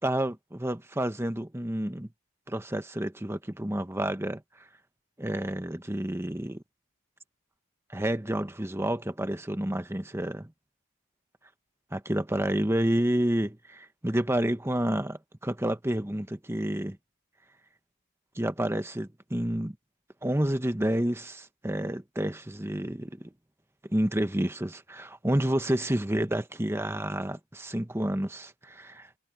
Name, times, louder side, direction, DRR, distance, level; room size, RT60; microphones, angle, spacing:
voice 1, 0.0-2.1 2.5-4.7 5.2-6.6 7.9-10.5 11.9-17.0 18.3-19.8 20.2-23.3 23.9-29.2, right 1 dB, 10° right, 1.1 m, -29 dB
head